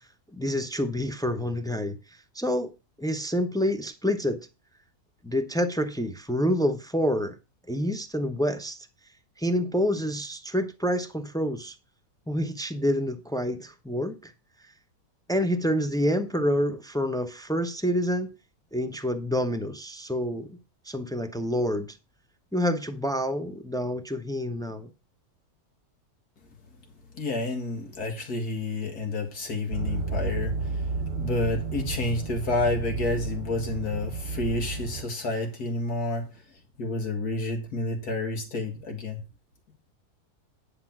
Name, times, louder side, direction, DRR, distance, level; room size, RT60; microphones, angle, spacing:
voice 1, 0.3-2.0 2.3-2.7 3.0-4.5 5.2-7.3 7.7-8.8 9.4-11.8 12.3-14.3 15.3-18.3 18.7-20.6 20.9-22.0 22.5-24.9, equal, 5° left, 0.4 m, -27 dB
voice 2, 27.1-30.8 31.1-36.4 36.8-39.2, left 2 dB, 80° left, 2.6 m, -29 dB
sound 1, 29.7-35.0, right 4 dB, 45° right, 1.1 m, -32 dB
10.0 x 5.2 x 5.9 m
omnidirectional pair, 1.6 m